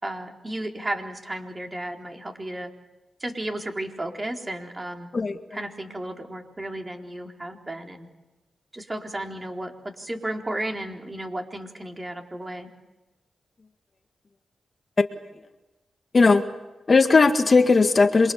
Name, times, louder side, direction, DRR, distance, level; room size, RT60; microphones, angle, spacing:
voice 1, 0.0-2.7 3.2-5.1 5.5-8.1 8.7-12.7, right 1 dB, 25° right, 2 dB, 4.0 m, -33 dB
voice 2, 16.1-16.4 16.9-18.3, left 4 dB, 45° left, 7 dB, 1.8 m, -17 dB
27.5 x 23.0 x 7.0 m, 1.1 s
cardioid pair, 55°, 0 cm